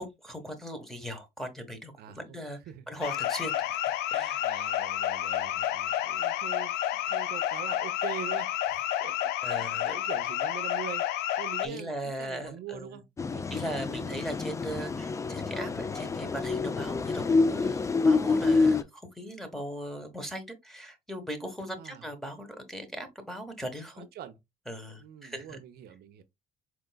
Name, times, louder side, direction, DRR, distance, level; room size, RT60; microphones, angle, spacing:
voice 1, 0.0-2.6 2.9-3.5 3.9-4.4 9.4-10.0 11.6-13.0 13.5-24.1 24.7-25.6, equal, ahead, 1.2 m, -39 dB
voice 2, 2.0-2.9 4.4-11.1 11.4-14.2 21.8-22.1 24.0-24.4 25.0-26.2, right 10 dB, 65° right, 0.6 m, -44 dB
sound 1, 3.0-11.7, left 12 dB, 85° left, 0.4 m, -30 dB
sound 2, 13.2-18.8, left 4 dB, 20° left, 0.4 m, -27 dB
4.6 x 3.7 x 2.2 m
cardioid pair, 110°, 17 cm